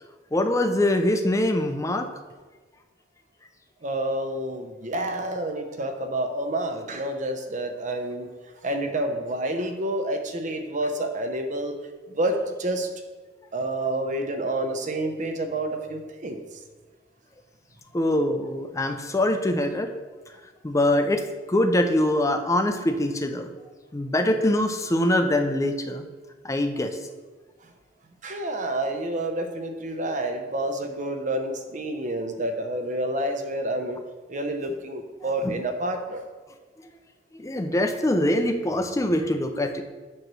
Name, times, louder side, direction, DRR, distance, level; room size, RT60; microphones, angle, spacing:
voice 1, 0.3-2.1 17.9-19.9 20.6-21.2 21.5-23.5 23.9-26.1 26.4-27.0 35.4-35.5 37.3-39.8, left 1 dB, 15° left, 6 dB, 0.4 m, -23 dB
voice 2, 3.8-11.8 12.1-12.9 13.5-16.6 18.9-19.0 27.6-27.7 28.2-34.0 34.3-36.2, right 1 dB, 45° right, 6 dB, 0.7 m, -29 dB
7.7 x 3.1 x 6.1 m, 1.3 s
head